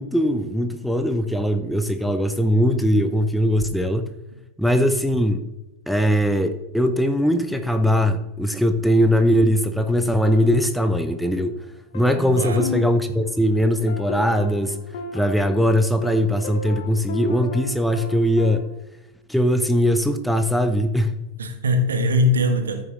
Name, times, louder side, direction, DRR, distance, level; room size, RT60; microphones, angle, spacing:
voice 1, 0.0-4.0 4.6-5.5 5.9-11.5 11.9-14.8 15.1-18.7 19.3-21.2, equal, ahead, 0.7 m, -20 dB
sound 1, 10.2-11.5 11.9-18.6, left 3 dB, 55° left, 1.3 m, -34 dB
voice 2, 12.4-12.7 21.4-22.8, left 1 dB, 70° right, 1.3 m, -21 dB
13.5 x 6.6 x 3.1 m
figure-of-eight pair, 90°, 0 cm